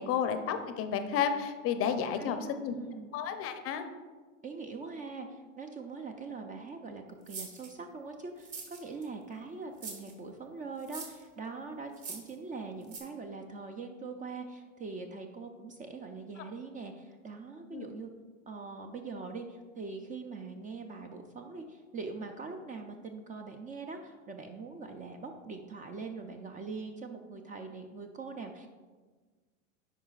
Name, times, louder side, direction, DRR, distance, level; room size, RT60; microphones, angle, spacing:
voice 1, 0.0-2.7 3.1-3.8 17.7-17.9, left 7 dB, 35° left, 8 dB, 0.6 m, -31 dB
voice 2, 2.2-3.1 4.4-18.1 18.5-28.7, right 4 dB, 20° right, 5 dB, 0.4 m, -42 dB
sound 1, 7.3-7.7 8.4-9.1 9.8-10.1 10.8-11.2 11.9-12.3 12.9-13.0, right 4 dB, 35° right, 1.5 m, -43 dB
10.0 x 4.9 x 2.4 m, 1.4 s
hypercardioid pair, 95°, 39 cm